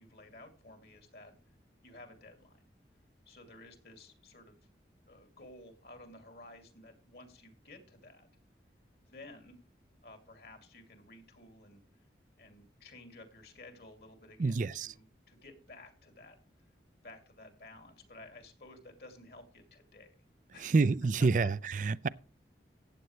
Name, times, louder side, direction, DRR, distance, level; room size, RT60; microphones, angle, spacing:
voice 1, 0.0-1.3 1.8-2.7 3.3-4.6 5.1-8.3 9.0-9.6 10.0-12.1 12.4-16.7 17.0-20.1 20.5-20.8 21.2-21.8, left 2 dB, 60° left, 2.6 m, -54 dB
voice 2, 14.4-14.9 20.6-22.1, right 4 dB, 45° right, 0.4 m, -28 dB
14.5 x 9.1 x 3.2 m
head